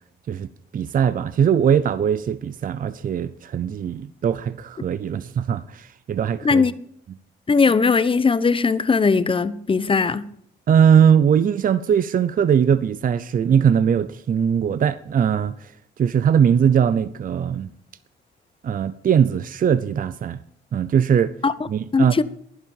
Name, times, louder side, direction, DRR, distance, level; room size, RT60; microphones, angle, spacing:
voice 1, 0.7-6.6 10.7-15.7 16.0-17.7 18.6-20.4 20.7-21.4 21.7-22.2, right 8 dB, 45° right, 0.6 m, -20 dB
voice 2, 7.5-10.3 21.4-21.5 21.9-22.2, left 4 dB, 25° left, 0.8 m, -19 dB
11.5 x 11.0 x 5.4 m
cardioid pair, 90°, 20 cm